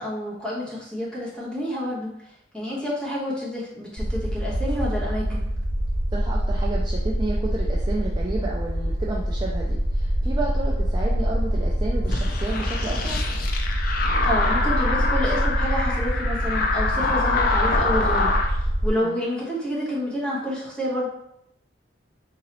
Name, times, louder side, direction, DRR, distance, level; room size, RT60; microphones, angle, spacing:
voice 1, 0.0-2.1 2.5-5.5 14.2-21.1, equal, 5° left, -8 dB, 1.2 m, -29 dB
sound 1, 4.0-18.9, equal, 40° right, 1.1 m, -25 dB
voice 2, 6.1-13.2 19.0-19.2, right 2 dB, 25° right, -3 dB, 0.4 m, -31 dB
sound 2, 12.0-18.5, left 3 dB, 50° left, 0.4 m, -25 dB
3.8 x 2.9 x 3.0 m, 0.79 s
head